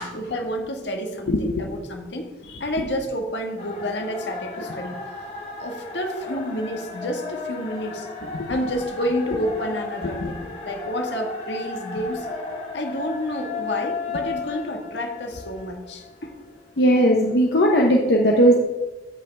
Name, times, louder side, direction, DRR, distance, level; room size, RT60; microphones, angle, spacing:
voice 1, 0.0-2.3 2.6-5.0 5.6-8.1 8.5-12.3 12.7-16.3, equal, 80° left, 4 dB, 1.5 m, -29 dB
sound 1, 3.6-16.4, left 4 dB, 35° left, 2.3 m, -34 dB
voice 2, 16.8-18.6, equal, 65° left, 0 dB, 0.9 m, -17 dB
15.0 x 5.6 x 3.4 m, 1.2 s
head